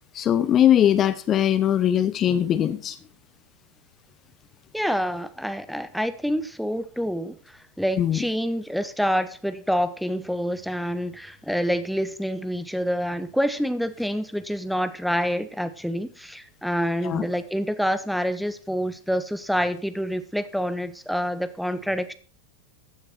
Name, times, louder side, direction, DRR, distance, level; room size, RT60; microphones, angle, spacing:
voice 1, 0.1-3.0 8.0-8.2 17.0-17.2, left 10 dB, 30° left, 13 dB, 0.8 m, -20 dB
voice 2, 4.7-7.4 7.8-22.1, equal, ahead, 11 dB, 1.0 m, -27 dB
15.0 x 9.3 x 4.3 m, 0.41 s
figure-of-eight pair, 90°, 0 cm